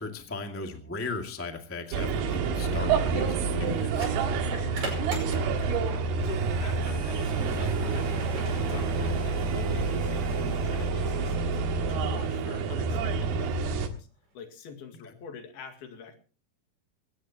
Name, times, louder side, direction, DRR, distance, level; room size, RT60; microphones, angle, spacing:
voice 1, 0.0-4.4 15.0-15.1, left 3 dB, 10° left, 3 dB, 0.8 m, -37 dB
sound 1, 1.8-2.0 3.9-6.1 6.5-9.7, right 3 dB, 60° right, 6.8 m, -40 dB
sound 2, 1.9-13.9, right 4 dB, 80° right, 3.5 m, -28 dB
voice 2, 5.3-5.8 6.2-8.2 8.6-14.1 14.4-16.2, left 6 dB, 70° left, 5 dB, 3.9 m, -45 dB
Harmonica, 6.2-12.2, right 1 dB, 35° right, 4.4 m, -52 dB
21.5 x 17.5 x 2.9 m, 0.36 s
omnidirectional pair, 4.6 m